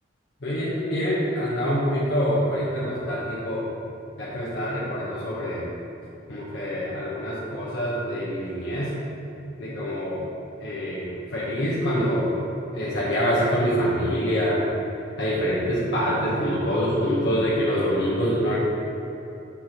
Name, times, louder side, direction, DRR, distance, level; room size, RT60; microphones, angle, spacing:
voice 1, 0.4-3.6 4.2-5.7 6.3-9.0 9.6-10.3 10.6-12.4 12.7-14.7 15.2-18.6, equal, 65° left, -8 dB, 1.0 m, -25 dB
7.3 x 6.1 x 3.0 m, 3.0 s
head